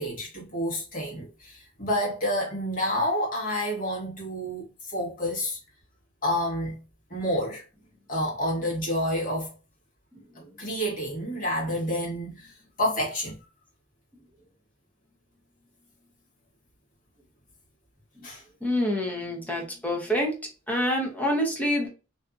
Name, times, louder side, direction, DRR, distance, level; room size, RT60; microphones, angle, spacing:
voice 1, 0.0-5.6 6.2-6.8 7.1-7.6 8.1-9.5 10.6-12.5 12.8-13.4 18.2-18.4, equal, 40° left, 1.2 m, -29 dB
voice 2, 18.6-20.3 20.7-21.9, equal, 10° left, 0.7 m, -26 dB
2.5 x 2.5 x 2.3 m
head